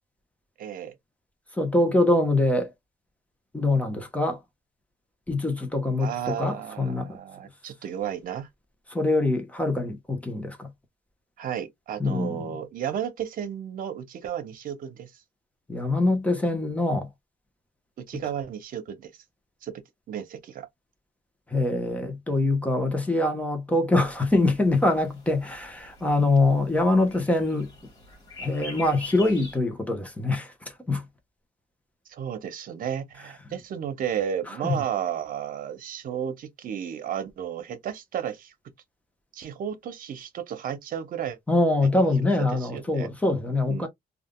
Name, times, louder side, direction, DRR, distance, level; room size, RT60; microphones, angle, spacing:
voice 1, 0.6-0.9 6.0-8.5 11.4-15.1 18.0-19.1 19.6-19.8 20.1-20.7 32.1-38.5 39.3-41.4 41.9-42.1 42.6-43.1 43.7-43.9, right 9 dB, 55° right, 0.9 m, -33 dB
voice 2, 1.6-2.7 3.5-4.4 5.3-7.2 8.9-10.7 12.0-12.5 15.7-17.1 21.5-27.7 28.4-30.5 30.9-31.0 34.6-34.7 41.5-43.9, left 2 dB, 10° left, 1.0 m, -24 dB
sound 1, 24.0-29.6, left 3 dB, 25° left, 2.0 m, -44 dB
3.4 x 2.5 x 2.3 m
cardioid pair, 110°, 17 cm